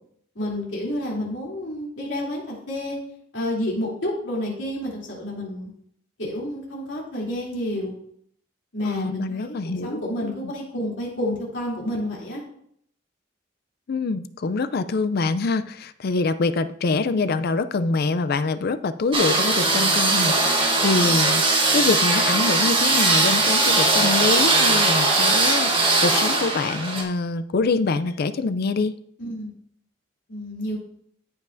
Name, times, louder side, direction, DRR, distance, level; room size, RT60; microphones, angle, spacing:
voice 1, 0.3-3.0 3.3-5.7 6.2-7.9 8.7-9.6 9.8-12.4 29.2-29.5 30.3-30.8, left 1 dB, 75° left, -4 dB, 3.1 m, -29 dB
voice 2, 8.8-10.0 10.4-10.5 13.9-28.9, left 3 dB, 55° left, 12 dB, 0.4 m, -25 dB
sound 1, 19.1-27.0, right 2 dB, 30° right, 1.3 m, -20 dB
14.0 x 5.5 x 2.6 m, 0.68 s
head